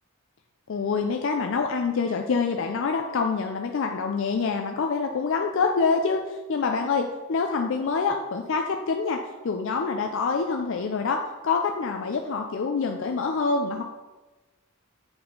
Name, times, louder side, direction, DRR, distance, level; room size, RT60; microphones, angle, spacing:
voice 1, 0.7-9.2 9.4-13.8, left 4 dB, 60° left, 4 dB, 0.4 m, -26 dB
7.7 x 4.3 x 3.8 m, 1.2 s
head